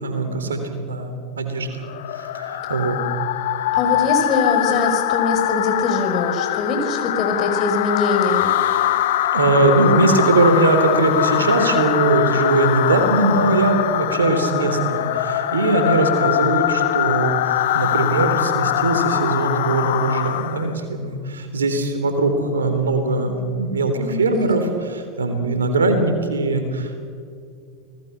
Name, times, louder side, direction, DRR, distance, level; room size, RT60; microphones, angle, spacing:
voice 1, 0.0-1.8 2.3-3.0 9.3-17.4 17.7-27.1, right 2 dB, 80° right, 7 dB, 3.5 m, -20 dB
sound 1, 1.8-20.7, left 13 dB, 65° left, 1.1 m, -22 dB
voice 2, 3.7-8.6 23.9-24.3, left 3 dB, 40° left, 4 dB, 5.1 m, -23 dB
29.5 x 19.5 x 5.9 m, 2.2 s
figure-of-eight pair, 85°, 0 cm